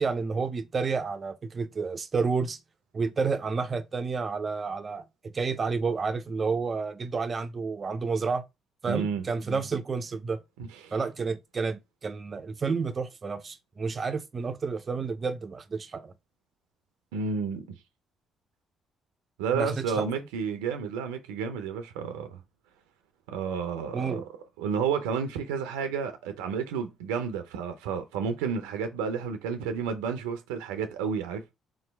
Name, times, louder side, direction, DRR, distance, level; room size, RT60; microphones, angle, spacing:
voice 1, 0.0-2.6 2.9-8.4 8.8-10.4 10.9-16.1 19.5-20.1 23.9-24.2, right 4 dB, 40° right, 0.5 m, -30 dB
voice 2, 8.9-9.3 10.6-10.9 17.1-17.8 19.4-22.4 23.3-24.3 24.6-31.4, right 6 dB, 90° right, 0.6 m, -31 dB
3.8 x 3.1 x 3.4 m
supercardioid pair, 60°, 0 cm